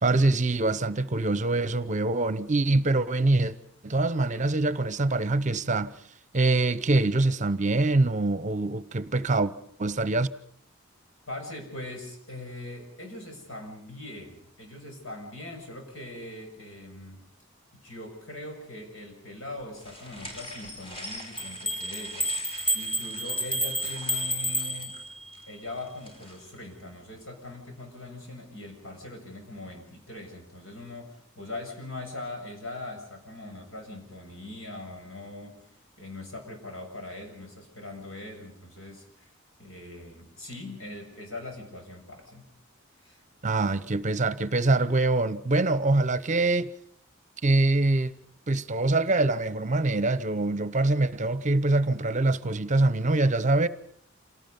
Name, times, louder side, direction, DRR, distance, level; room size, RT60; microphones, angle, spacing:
voice 1, 0.0-3.5 3.8-5.9 6.3-9.5 9.8-10.3 43.4-46.7 47.4-48.1 48.5-53.7, right 2 dB, 35° right, 0.8 m, -24 dB
voice 2, 11.3-17.2 17.7-22.3 22.7-25.0 25.5-35.6 36.0-39.3 39.6-42.5 43.0-43.2, left 2 dB, 75° left, 7.5 m, -41 dB
sound 1, 19.8-26.6, left 1 dB, 30° left, 5.1 m, -45 dB
sound 2, 21.4-25.3, equal, 5° left, 1.3 m, -30 dB
27.5 x 18.5 x 5.4 m
head